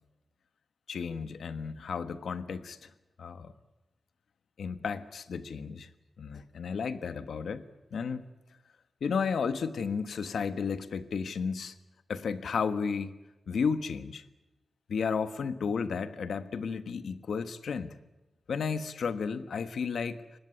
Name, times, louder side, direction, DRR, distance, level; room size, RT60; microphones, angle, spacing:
voice 1, 0.9-2.9 3.2-3.5 4.6-5.9 6.2-7.6 7.9-8.2 9.0-11.7 12.1-13.1 13.5-14.2 14.9-17.9 18.5-20.2, left 5 dB, 85° left, 11 dB, 1.3 m, -33 dB
24.0 x 19.0 x 9.8 m, 1.0 s
wide cardioid pair, 170°, 0 cm